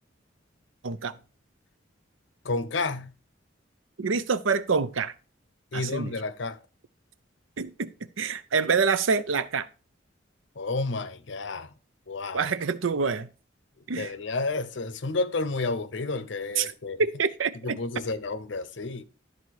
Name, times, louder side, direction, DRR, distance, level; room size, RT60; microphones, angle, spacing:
voice 1, 0.8-1.2 4.0-5.1 5.7-6.1 7.6-9.7 12.3-13.3 13.9-14.1 16.6-16.7 17.0-17.8, right 5 dB, 85° right, 0.7 m, -26 dB
voice 2, 2.4-3.1 5.7-6.6 10.6-11.7 12.1-12.5 13.9-17.0 17.6-19.0, left 3 dB, 65° left, 0.7 m, -31 dB
12.0 x 4.1 x 4.7 m
head